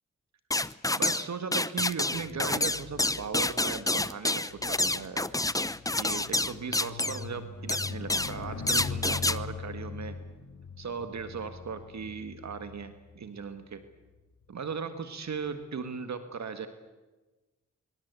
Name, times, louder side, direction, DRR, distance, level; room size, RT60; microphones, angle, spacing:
sound 1, 0.5-1.3 1.5-7.2 7.7-8.4 8.7-9.4, left 2 dB, 10° left, 0.8 m, -28 dB
voice 1, 0.9-5.3 5.9-10.2 10.8-13.8 14.5-16.7, right 5 dB, 70° right, 9 dB, 1.7 m, -37 dB
sound 2, 2.0-13.7 14.4-14.7, left 5 dB, 75° left, 2.5 m, -42 dB
25.0 x 22.5 x 8.2 m, 1.2 s
cardioid pair, 60°, 29 cm